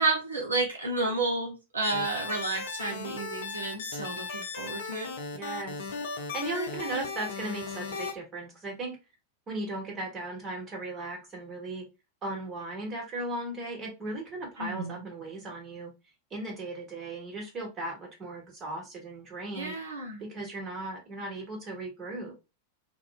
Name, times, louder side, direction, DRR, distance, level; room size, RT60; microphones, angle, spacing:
voice 1, 0.0-5.1 14.6-15.0 19.5-20.2, right 3 dB, 75° right, 0 dB, 0.6 m, -31 dB
sound 1, 1.8-8.1, left 4 dB, 55° left, 0.5 m, -37 dB
voice 2, 5.3-5.7 6.3-9.0 9.5-11.9 12.2-15.9 16.3-19.7 20.2-22.3, right 2 dB, 25° right, -1 dB, 1.2 m, -37 dB
2.4 x 2.1 x 3.4 m, 0.27 s
figure-of-eight pair, 90°, 0 cm